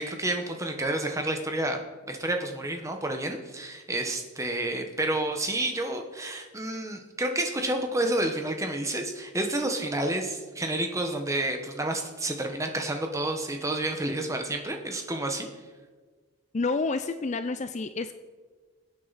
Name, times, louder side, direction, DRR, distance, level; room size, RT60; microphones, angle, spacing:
voice 1, 0.0-1.8 2.1-15.5, right 1 dB, 15° right, 4 dB, 1.2 m, -30 dB
voice 2, 16.5-18.1, left 3 dB, 30° left, 10 dB, 0.4 m, -29 dB
22.0 x 8.7 x 4.1 m, 1.4 s
head